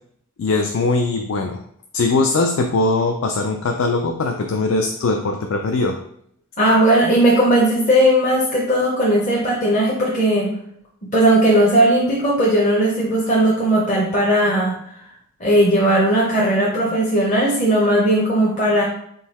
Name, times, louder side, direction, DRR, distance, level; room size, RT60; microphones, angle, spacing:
voice 1, 0.4-1.6 1.9-6.0, left 3 dB, 60° left, 4 dB, 0.3 m, -20 dB
voice 2, 6.6-10.5 11.0-14.8 15.4-18.8, right 1 dB, 35° left, -5 dB, 0.7 m, -17 dB
3.8 x 2.7 x 4.1 m, 0.68 s
head